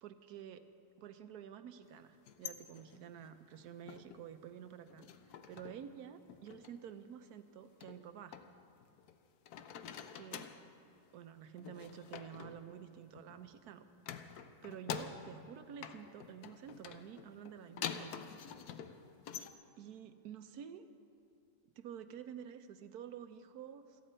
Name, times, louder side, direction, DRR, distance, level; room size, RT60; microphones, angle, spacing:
voice 1, 0.0-0.6 1.0-5.1 5.5-8.4 10.1-10.5 11.1-13.8 14.2-18.3 19.8-20.9 21.8-24.0, right 9 dB, 90° right, 9 dB, 1.3 m, -50 dB
sound 1, 2.1-4.3 4.7-5.9 6.2-6.7 7.8-9.2 9.5-10.7 11.6-13.5 14.0-15.5 15.8-19.5, left 8 dB, 85° left, 1.2 m, -47 dB
28.5 x 10.0 x 4.4 m, 2.5 s
omnidirectional pair, 1.6 m